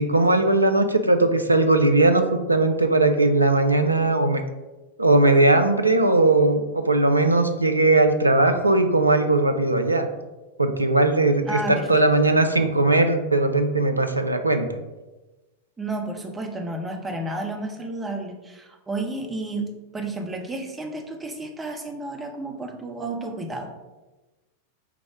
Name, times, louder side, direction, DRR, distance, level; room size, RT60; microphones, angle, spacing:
voice 1, 0.0-2.2 2.5-4.4 5.0-10.1 10.6-14.7, right 2 dB, 85° right, 7 dB, 0.4 m, -19 dB
voice 2, 11.5-12.0 15.8-23.7, right 2 dB, 15° right, 2 dB, 0.7 m, -31 dB
4.7 x 2.0 x 4.7 m, 1.1 s
figure-of-eight pair, 90°, 0 cm